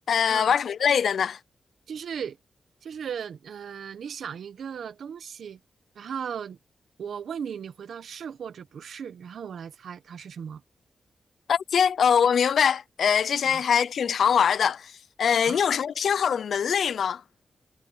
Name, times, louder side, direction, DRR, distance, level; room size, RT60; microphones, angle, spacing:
voice 1, 0.1-1.4 11.5-17.2, left 7 dB, 70° left, 0.6 m, -23 dB
voice 2, 1.9-2.4 2.8-5.6 5.9-6.6 7.0-10.6 13.4-13.6 15.5-15.6, right 7 dB, 75° right, 1.3 m, -37 dB
wide cardioid pair, 175°, 0 cm